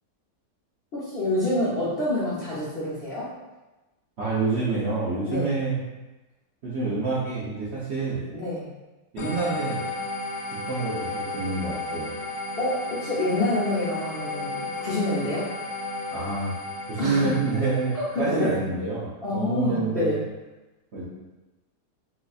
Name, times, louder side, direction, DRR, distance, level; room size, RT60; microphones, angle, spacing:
voice 1, 0.9-3.3 5.2-5.5 8.3-8.7 12.6-15.5 17.0-17.4 17.9-18.6 19.2-20.2, left 2 dB, 55° left, -11 dB, 0.7 m, -27 dB
voice 2, 4.2-5.8 6.6-8.2 9.1-9.8 10.7-12.1 16.1-16.5 16.9-20.2 20.9-21.0, right 3 dB, 60° right, -10 dB, 0.7 m, -27 dB
sound 1, 9.2-18.5, left 2 dB, 75° left, 1.1 m, -34 dB
4.0 x 2.4 x 2.4 m, 1.1 s
omnidirectional pair, 1.9 m